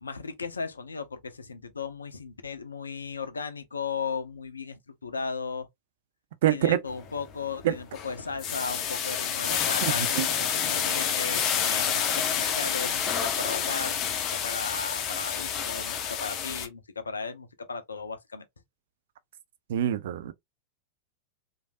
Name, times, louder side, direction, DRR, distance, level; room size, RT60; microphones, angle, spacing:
voice 1, 0.0-5.7 6.5-18.4, left 5 dB, 75° left, 0.5 m, -36 dB
voice 2, 6.4-6.8 7.6-7.7 9.8-10.3 19.7-20.3, right 11 dB, 55° right, 0.5 m, -25 dB
sound 1, 6.9-7.2 7.6-16.7, left 8 dB, 35° left, 0.6 m, -28 dB
3.2 x 2.6 x 2.5 m
figure-of-eight pair, 90°, 0 cm